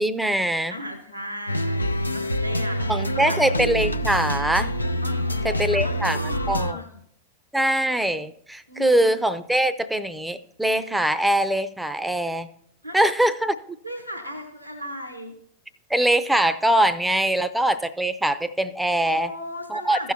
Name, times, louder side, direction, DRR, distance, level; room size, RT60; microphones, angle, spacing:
voice 1, 0.0-0.7 2.9-4.7 5.4-6.2 6.5-6.8 7.5-12.5 12.9-13.5 15.9-19.3 19.7-20.1, right 1 dB, 5° right, 13 dB, 0.6 m, -22 dB
voice 2, 0.7-3.5 5.0-7.0 8.7-9.1 12.8-13.0 13.8-15.3 19.0-20.1, equal, 90° right, 4 dB, 1.2 m, -36 dB
sound 1, 1.5-6.7, equal, 85° left, 0.5 m, -26 dB
16.0 x 6.2 x 2.8 m, 0.69 s
figure-of-eight pair, 90°, 0 cm